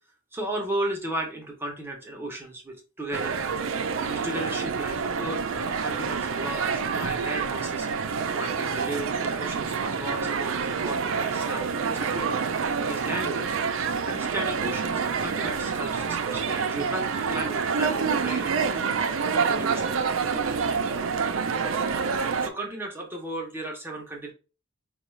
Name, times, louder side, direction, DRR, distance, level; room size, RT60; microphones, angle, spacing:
voice 1, 0.3-3.4 4.1-12.3 12.8-13.6 14.1-18.9 19.4-20.0 20.3-20.7 22.1-24.3, right 1 dB, 10° right, 0 dB, 0.6 m, -35 dB
sound 1, 3.1-22.5, right 5 dB, 70° right, 0.4 m, -27 dB
4.8 x 2.3 x 3.1 m, 0.33 s
head